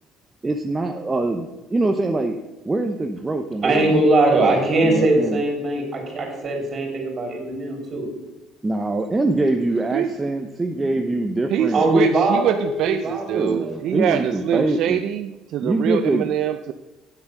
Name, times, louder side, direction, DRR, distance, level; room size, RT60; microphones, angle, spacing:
voice 1, 0.4-2.4 2.6-4.0 4.4-4.5 4.8-5.4 8.6-11.9 13.3-15.0 15.6-16.3, right 2 dB, 15° right, 3 dB, 0.7 m, -24 dB
voice 2, 3.6-8.1 11.7-13.7, right 2 dB, 30° right, 0 dB, 3.5 m, -21 dB
voice 3, 9.9-10.2 11.5-16.7, right 10 dB, 60° right, 8 dB, 0.5 m, -24 dB
9.0 x 8.0 x 5.9 m, 1.0 s
cardioid pair, 135°, 0 cm